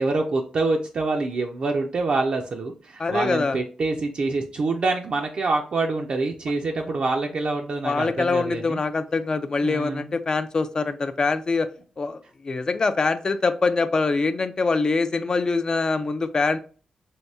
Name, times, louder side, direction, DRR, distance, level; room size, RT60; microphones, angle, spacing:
voice 1, 0.0-8.8 9.6-10.2, right 3 dB, 55° right, 2 dB, 0.4 m, -26 dB
voice 2, 3.0-3.6 7.8-11.7 12.0-12.2 12.4-16.6, left 4 dB, 35° left, 11 dB, 0.3 m, -24 dB
3.3 x 2.6 x 2.7 m, 0.38 s
cardioid pair, 100°, 2 cm